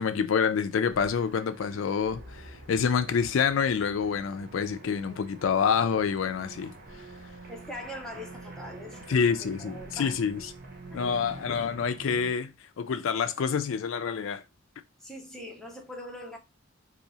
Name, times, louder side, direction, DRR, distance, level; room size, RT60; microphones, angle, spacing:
voice 1, 0.0-6.7 9.1-10.5 10.9-14.4, left 6 dB, 75° left, 0.4 m, -27 dB
sound 1, 0.9-12.3, right 2 dB, 50° right, 0.8 m, -46 dB
voice 2, 7.5-10.2 10.9-11.0 15.0-16.4, left 1 dB, ahead, 0.7 m, -42 dB
2.8 x 2.7 x 4.0 m
head